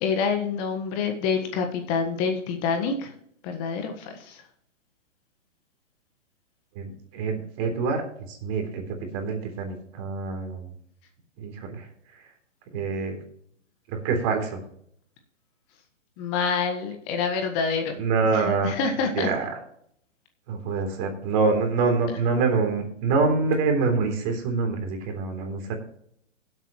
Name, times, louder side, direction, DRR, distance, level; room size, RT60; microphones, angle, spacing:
voice 1, 0.0-3.1 3.4-4.4 16.2-17.9 18.3-19.3, left 5 dB, 30° left, 5 dB, 1.6 m, -27 dB
voice 2, 6.8-8.8 9.1-10.7 11.4-11.9 12.2-12.3 12.7-13.2 13.9-14.6 18.0-18.8 19.1-19.5 20.5-25.7, right 4 dB, 35° right, 4 dB, 3.5 m, -26 dB
17.5 x 8.1 x 3.1 m, 0.67 s
hypercardioid pair, 135°, 37 cm